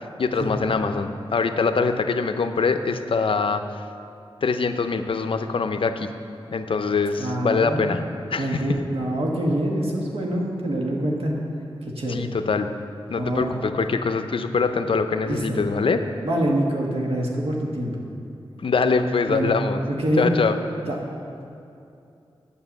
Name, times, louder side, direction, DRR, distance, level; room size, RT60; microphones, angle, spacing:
voice 1, 0.2-3.6 4.4-6.1 6.5-8.0 8.3-8.6 12.1-12.7 13.1-16.0 18.6-19.8 20.2-20.6, left 4 dB, 70° left, 8 dB, 0.6 m, -23 dB
voice 2, 7.2-7.9 8.4-11.3 11.9-12.3 13.2-13.5 15.2-15.6 16.2-18.0 19.3-19.5 19.9-20.3 20.9-21.0, right 1 dB, 85° right, -1 dB, 1.5 m, -25 dB
8.8 x 6.9 x 7.1 m, 2.6 s
wide cardioid pair, 75°, 10 cm